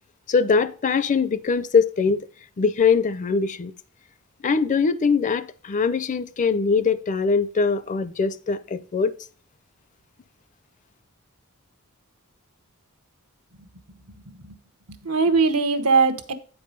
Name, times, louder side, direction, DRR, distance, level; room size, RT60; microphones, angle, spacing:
voice 1, 0.3-2.3 2.6-3.7 4.4-9.1, left 5 dB, 35° left, 0.4 m, -22 dB
voice 2, 14.3-14.6 14.9-16.3, right 4 dB, 85° right, 1.0 m, -21 dB
8.7 x 4.7 x 5.2 m
head